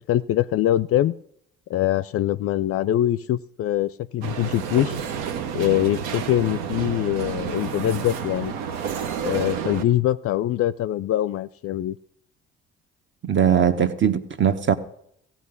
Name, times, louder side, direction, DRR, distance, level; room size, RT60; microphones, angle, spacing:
voice 1, 0.1-1.1 1.7-5.0 5.5-8.5 9.2-11.9, left 13 dB, 50° left, 0.4 m, -23 dB
sound 1, 4.2-9.8, right 7 dB, 85° right, 0.9 m, -30 dB
voice 2, 13.2-14.7, right 8 dB, 40° right, 1.2 m, -20 dB
15.5 x 6.0 x 8.2 m
hypercardioid pair, 55°, 29 cm